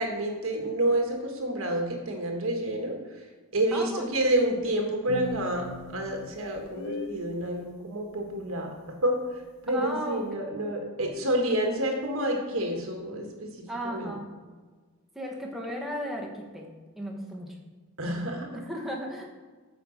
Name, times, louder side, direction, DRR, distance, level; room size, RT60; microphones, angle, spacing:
voice 1, 0.0-3.2 3.5-14.1 18.0-18.6, right 1 dB, 75° right, 2 dB, 1.5 m, -29 dB
voice 2, 3.7-4.0 9.7-10.2 13.7-14.3 15.1-17.6 18.0-19.3, equal, ahead, -1 dB, 1.3 m, -35 dB
sound 1, 5.1-7.3, left 3 dB, 55° left, 0.6 m, -38 dB
7.6 x 5.1 x 6.4 m, 1.4 s
head